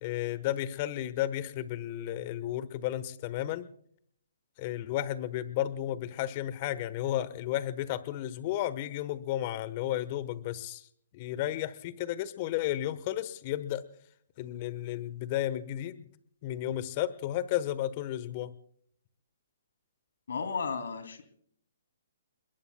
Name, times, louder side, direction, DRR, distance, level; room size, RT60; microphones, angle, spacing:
voice 1, 0.0-3.7 4.6-10.8 11.1-13.8 14.4-16.0 16.4-18.5, left 13 dB, 35° left, 16 dB, 1.1 m, -33 dB
voice 2, 20.3-21.2, left 5 dB, 70° left, 9 dB, 2.7 m, -34 dB
29.5 x 21.5 x 2.2 m, 0.64 s
hypercardioid pair, 135°, 0 cm